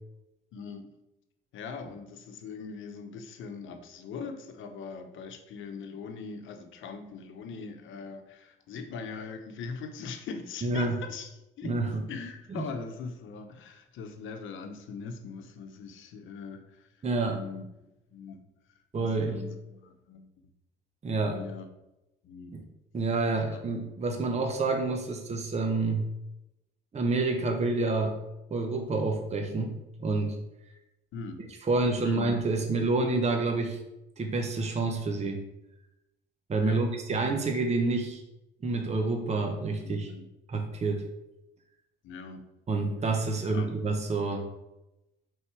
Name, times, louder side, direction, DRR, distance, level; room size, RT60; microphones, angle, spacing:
voice 1, 0.5-0.9 1.5-11.8 12.1-16.9 17.3-17.6 18.1-18.4 19.0-20.3 21.2-21.7 22.2-22.6 23.5-24.1 31.1-31.4 32.0-32.3 36.6-36.8 39.8-40.3 42.0-42.5 43.4-43.7, left 5 dB, 80° left, 7 dB, 0.8 m, -41 dB
voice 2, 10.6-11.0 11.6-12.0 12.6-12.7 17.0-17.4 18.9-19.4 21.0-21.4 22.5-22.6 22.9-26.0 26.9-28.2 28.5-30.4 31.6-33.8 34.2-35.4 36.5-38.2 38.6-40.1 40.5-41.0 42.7-44.4, right 3 dB, 35° right, 3 dB, 0.8 m, -28 dB
5.5 x 3.8 x 4.7 m, 0.92 s
cardioid pair, 90°, 20 cm